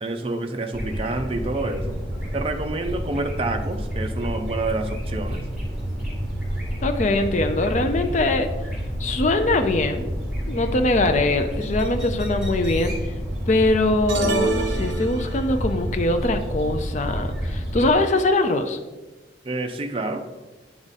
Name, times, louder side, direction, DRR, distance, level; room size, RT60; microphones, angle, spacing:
voice 1, 0.0-2.0 2.3-5.4 19.4-20.3, right 2 dB, 30° right, 4 dB, 0.5 m, -28 dB
sound 1, 0.7-17.9, equal, 5° right, 2.1 m, -29 dB
voice 2, 6.8-8.5 9.0-10.0 10.5-13.1 13.5-18.8, left 2 dB, 40° left, 7 dB, 0.4 m, -22 dB
sound 2, 14.1-15.6, right 3 dB, 70° right, 0.7 m, -27 dB
8.8 x 3.6 x 4.0 m, 1.2 s
head